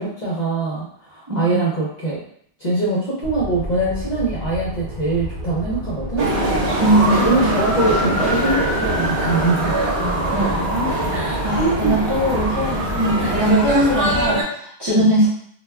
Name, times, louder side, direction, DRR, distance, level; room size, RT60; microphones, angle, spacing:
voice 1, 0.0-2.2 2.6-6.3 7.2-9.7 11.1-11.9 14.9-15.1, right 3 dB, 50° left, -5 dB, 0.6 m, -23 dB
voice 2, 1.3-1.6 6.8-8.2 10.0-11.0 11.4-15.3, right 1 dB, 30° right, -8 dB, 0.6 m, -21 dB
sound 1, 3.2-14.4, left 1 dB, 50° right, 0.8 m, -30 dB
sound 2, 6.2-14.4, right 1 dB, 80° right, 0.9 m, -22 dB
2.2 x 2.2 x 3.2 m, 0.65 s
omnidirectional pair, 1.2 m